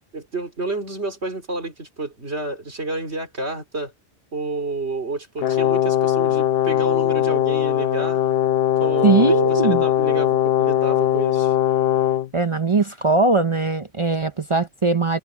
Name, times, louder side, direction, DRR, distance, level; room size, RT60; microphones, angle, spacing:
voice 1, 0.1-3.9 4.3-8.2 8.8-11.5, right 2 dB, 80° right, 3.9 m, -30 dB
Brass instrument, 5.4-12.3, left 11 dB, 65° left, 0.8 m, -20 dB
voice 2, 9.0-9.8 12.3-15.2, right 3 dB, 35° right, 0.7 m, -20 dB
omnidirectional pair, 1.1 m